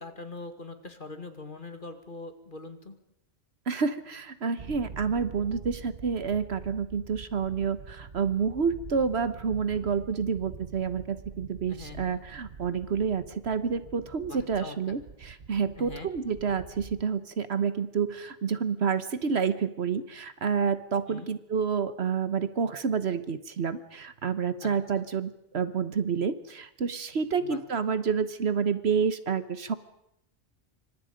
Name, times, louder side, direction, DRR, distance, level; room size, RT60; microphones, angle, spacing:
voice 1, 0.0-2.9 11.7-12.2 14.2-15.0 15.8-16.1 21.1-21.3 24.6-25.1 27.4-27.6, left 3 dB, 50° left, 7 dB, 2.4 m, -43 dB
voice 2, 3.7-29.7, right 6 dB, 75° right, 12 dB, 1.4 m, -29 dB
sound 1, 4.6-17.0, right 5 dB, 55° right, 1.2 m, -45 dB
27.5 x 25.0 x 5.2 m, 0.79 s
omnidirectional pair, 1.1 m